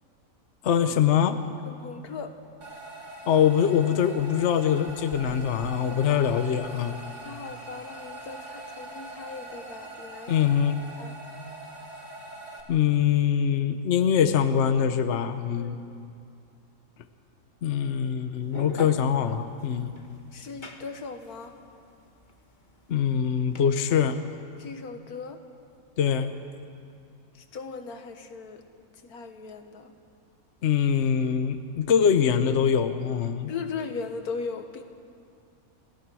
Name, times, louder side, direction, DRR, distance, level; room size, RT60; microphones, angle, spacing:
voice 1, 0.6-1.4 3.3-7.0 10.3-10.8 12.7-15.8 17.6-20.0 22.9-24.2 26.0-26.3 30.6-33.5, left 8 dB, 55° left, 9 dB, 1.1 m, -23 dB
voice 2, 1.6-2.3 5.9-6.0 7.2-10.6 11.0-11.1 15.6-15.8 20.3-21.6 24.6-25.4 27.3-28.6 28.9-29.9 33.5-34.8, left 5 dB, 85° left, 7 dB, 1.8 m, -38 dB
sound 1, 2.6-12.6, right 2 dB, 55° right, 2.4 m, -42 dB
sound 2, 4.1-4.5 4.9-7.0 7.4-7.5 8.0-8.1 8.4-8.5 8.9-9.0 10.8-10.9, right 5 dB, 80° right, 2.0 m, -48 dB
sound 3, 18.4-23.6, left 3 dB, 35° left, 1.4 m, -42 dB
27.5 x 17.5 x 6.2 m, 2.4 s
omnidirectional pair, 1.5 m